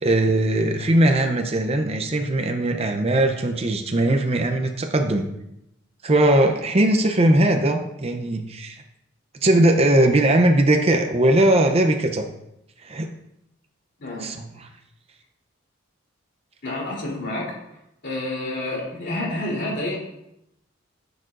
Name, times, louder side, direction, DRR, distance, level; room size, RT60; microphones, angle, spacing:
voice 1, 0.0-5.3 6.0-8.8 9.4-12.2 12.8-13.1 14.2-14.7, right 1 dB, 30° right, 5 dB, 0.6 m, -19 dB
voice 2, 16.6-17.5 18.0-20.0, left 1 dB, 60° left, -4 dB, 3.2 m, -28 dB
10.0 x 6.7 x 2.5 m, 0.82 s
head